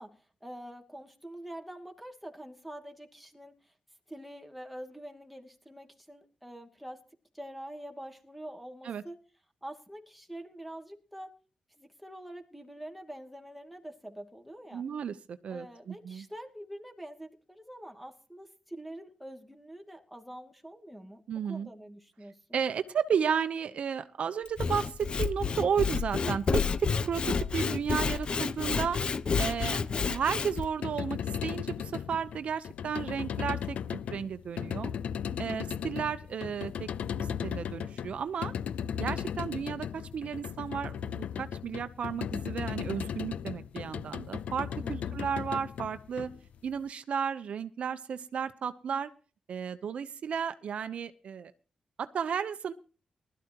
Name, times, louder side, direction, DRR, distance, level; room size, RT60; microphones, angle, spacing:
voice 1, 0.0-3.7 4.1-7.0 7.3-9.2 9.6-11.3 11.8-14.8 15.5-21.2 21.5-22.4 35.3-35.7 44.8-45.2, right 1 dB, ahead, 3 dB, 2.5 m, -45 dB
voice 2, 14.7-16.2 21.3-21.7 22.5-29.0 29.4-29.8 30.1-33.8 34.1-34.9 35.4-36.9 37.2-38.5 39.0-46.3 46.6-49.1 49.5-51.5 52.0-52.7, right 7 dB, 70° right, 11 dB, 0.9 m, -33 dB
Sawing / Wood, 24.4-30.7, left 5 dB, 45° left, 0.8 m, -30 dB
sound 1, 30.6-46.8, left 8 dB, 90° left, 0.5 m, -36 dB
20.0 x 13.0 x 3.0 m, 0.37 s
cardioid pair, 105°, 2 cm